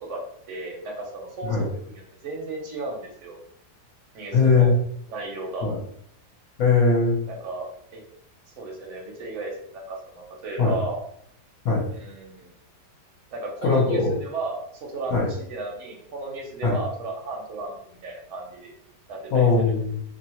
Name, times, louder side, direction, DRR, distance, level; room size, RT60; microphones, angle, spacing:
voice 1, 0.5-3.4 4.1-4.7 5.1-5.7 7.3-7.6 7.9-8.0 8.6-11.0 11.9-12.5 13.3-18.7 19.1-19.5, right 2 dB, 60° right, -1 dB, 0.8 m, -34 dB
voice 2, 4.3-4.8 5.6-5.8 6.6-7.2 10.6-10.8 11.6-11.9 13.6-14.1 15.1-15.3 16.6-16.8 19.3-20.0, left 4 dB, 65° left, -3 dB, 1.1 m, -20 dB
2.8 x 2.0 x 2.8 m, 0.68 s
omnidirectional pair, 1.8 m